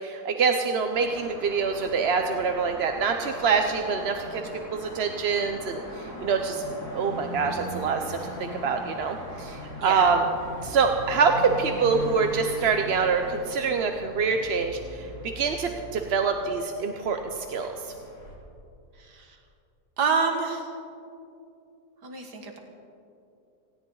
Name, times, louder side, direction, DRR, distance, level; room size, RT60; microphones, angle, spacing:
voice 1, 0.0-4.4 4.7-6.6 6.9-8.3 8.6-10.3 10.6-17.7, right 5 dB, 55° right, 5 dB, 0.8 m, -25 dB
sound 1, 0.9-18.3, equal, 80° left, 4.3 m, -40 dB
voice 2, 20.0-20.7 22.0-22.6, right 4 dB, 85° right, 3 dB, 2.1 m, -27 dB
19.0 x 17.0 x 3.9 m, 2.6 s
omnidirectional pair, 1.7 m